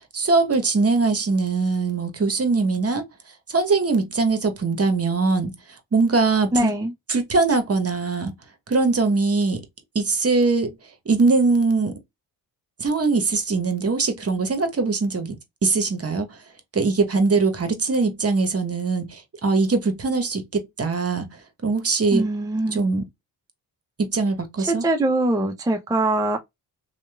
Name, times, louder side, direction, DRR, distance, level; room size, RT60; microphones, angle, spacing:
voice 1, 0.1-3.0 3.5-5.5 5.9-6.7 7.1-8.3 8.7-9.6 9.9-10.7 11.1-12.0 12.8-15.4 15.6-16.4 16.7-21.3 21.6-22.2 22.7-23.0 24.0-24.8, right 3 dB, 35° right, 1.0 m, -21 dB
voice 2, 6.5-6.9 22.1-22.9 24.6-26.4, right 2 dB, 10° right, 0.5 m, -22 dB
2.9 x 2.3 x 2.2 m
supercardioid pair, 45°, 42 cm